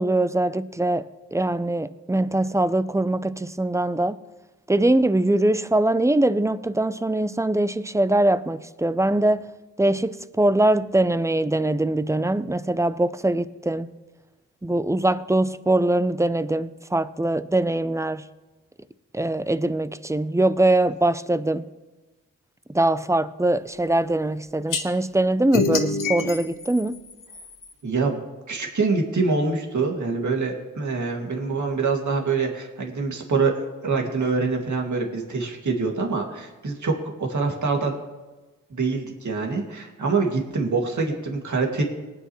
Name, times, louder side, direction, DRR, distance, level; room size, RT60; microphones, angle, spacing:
voice 1, 0.0-4.2 4.7-9.5 9.8-13.9 14.6-18.2 19.1-21.6 22.7-27.0, right 1 dB, 10° right, 0.5 m, -22 dB
sound 1, 24.7-24.8 25.5-27.7, left 4 dB, 70° left, 1.3 m, -27 dB
voice 2, 27.8-28.2 28.5-38.0 38.7-41.8, right 4 dB, 60° right, 2.3 m, -25 dB
19.0 x 9.4 x 3.2 m
cardioid pair, 50°, 33 cm